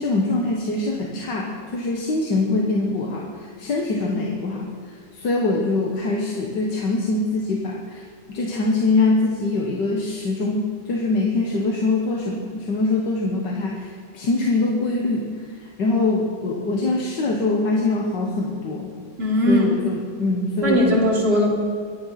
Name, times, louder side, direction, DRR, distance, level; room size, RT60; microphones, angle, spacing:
voice 1, 0.0-3.3 3.6-4.7 5.1-8.0 8.3-15.3 15.8-18.9 19.5-21.0, left 3 dB, 80° left, -1 dB, 2.1 m, -23 dB
voice 2, 19.2-19.7 20.6-21.5, left 1 dB, 35° right, -3 dB, 3.3 m, -18 dB
23.0 x 10.5 x 5.8 m, 2.1 s
omnidirectional pair, 1.9 m